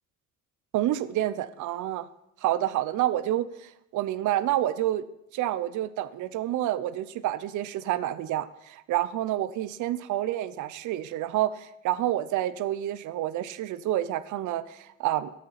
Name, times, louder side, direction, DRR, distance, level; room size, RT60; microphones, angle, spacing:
voice 1, 0.7-2.1 2.4-5.0 5.3-15.3, right 13 dB, 80° right, 15 dB, 0.6 m, -28 dB
9.2 x 6.4 x 5.8 m, 0.83 s
cardioid pair, 90°, 30 cm